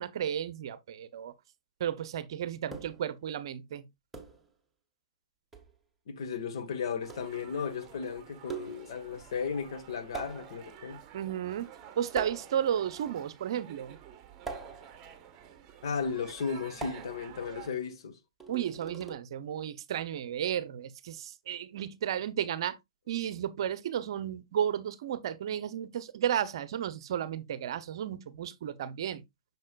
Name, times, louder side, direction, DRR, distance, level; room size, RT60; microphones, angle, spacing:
voice 1, 0.0-1.3 1.8-3.9 11.1-11.7 12.0-14.0 18.5-22.8 23.1-29.2, right 9 dB, 55° right, 0.8 m, -33 dB
sound 1, 2.7-3.1 4.1-4.5 5.5-5.7 7.1-7.4 8.5-9.0 10.1-10.8 12.2-12.8 14.5-15.1 16.8-17.4 18.4-19.1, right 4 dB, 5° right, 1.6 m, -42 dB
voice 2, 6.1-11.0 15.8-18.2, left 6 dB, 60° left, 1.6 m, -35 dB
sound 2, 7.0-17.7, right 9 dB, 25° right, 1.2 m, -51 dB
6.6 x 6.5 x 2.4 m
hypercardioid pair, 120°, 3 cm